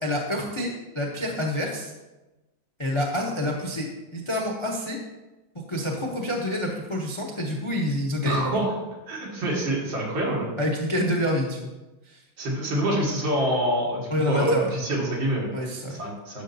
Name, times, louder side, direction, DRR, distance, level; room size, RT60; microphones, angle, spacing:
voice 1, 0.0-1.9 2.8-5.0 5.5-8.5 10.6-11.7 12.1-12.2 14.1-14.7 15.5-16.0, left 1 dB, 50° left, -1 dB, 0.3 m, -27 dB
voice 2, 8.2-8.7 9.1-10.5 12.4-15.5 15.9-16.4, right 1 dB, 75° right, -4 dB, 2.6 m, -26 dB
9.8 x 6.7 x 2.7 m, 1.1 s
omnidirectional pair, 2.1 m